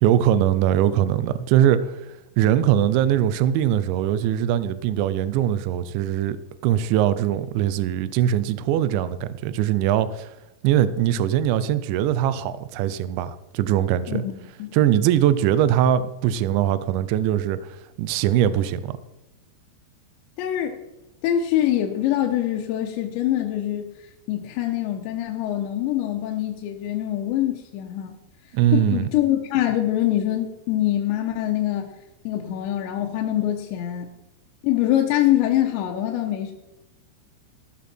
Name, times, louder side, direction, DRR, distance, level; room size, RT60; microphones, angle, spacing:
voice 1, 0.0-2.0 2.4-6.4 6.6-10.3 10.6-14.2 14.7-19.0 28.5-29.1, right 11 dB, 80° right, 14 dB, 2.7 m, -21 dB
voice 2, 20.4-20.8 21.2-23.8 24.3-28.2 28.7-31.9 32.2-34.1 34.6-36.5, left 12 dB, 75° left, 2 dB, 2.9 m, -24 dB
14.5 x 12.5 x 4.4 m, 0.94 s
omnidirectional pair, 5.9 m